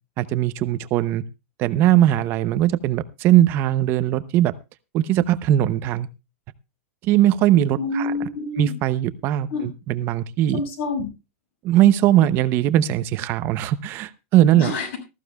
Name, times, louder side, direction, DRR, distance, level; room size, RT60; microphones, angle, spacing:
voice 1, 0.2-1.2 1.6-4.5 4.9-6.1 7.0-8.1 8.6-10.6 11.6-14.7, right 12 dB, 30° right, 13 dB, 0.7 m, -19 dB
voice 2, 7.8-8.7 9.5-9.7 10.5-11.1 14.6-15.0, left 3 dB, 60° left, 6 dB, 6.8 m, -27 dB
19.5 x 14.5 x 2.3 m, 0.27 s
supercardioid pair, 165°, 7 cm